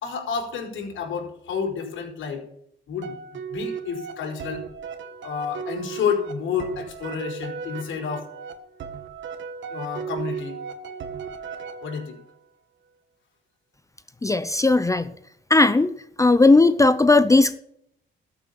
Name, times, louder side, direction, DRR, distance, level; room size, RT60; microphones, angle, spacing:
voice 1, 0.0-2.4 2.9-3.2 3.5-4.6 5.2-8.3 9.7-10.5 11.8-12.2, left 6 dB, 75° left, 1 dB, 4.8 m, -29 dB
sound 1, 3.0-12.3, right 6 dB, 70° right, 1.8 m, -36 dB
voice 2, 14.2-15.1 15.5-15.9 16.2-17.6, left 3 dB, 15° left, 13 dB, 0.7 m, -17 dB
14.0 x 8.2 x 7.1 m, 0.72 s
cardioid pair, 90°, 20 cm